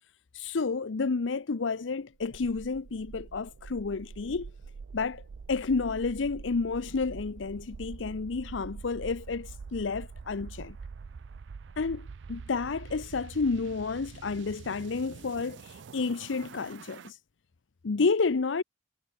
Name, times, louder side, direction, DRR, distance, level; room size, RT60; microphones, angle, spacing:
voice 1, 0.3-4.5 4.9-5.2 5.5-10.8 11.8-17.2 17.8-18.6, left 4 dB, 85° left, 0.6 m, -30 dB
sound 1, 2.1-17.1, right 5 dB, 70° right, 0.4 m, -45 dB
head